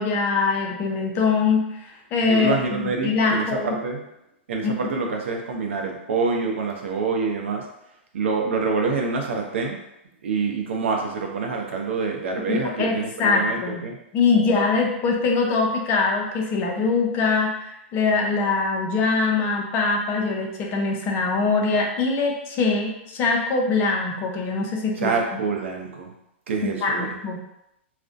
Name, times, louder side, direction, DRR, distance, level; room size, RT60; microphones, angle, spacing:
voice 1, 0.0-3.8 4.6-4.7 12.5-13.8 14.1-25.1 26.6-27.4, left 4 dB, 35° left, 0 dB, 0.5 m, -23 dB
voice 2, 2.2-4.0 4.5-7.6 8.1-9.8 10.2-14.0 25.0-26.1 26.5-27.1, right 4 dB, 75° right, 1 dB, 0.5 m, -26 dB
2.4 x 2.1 x 2.4 m, 0.84 s
hypercardioid pair, 125°, 7 cm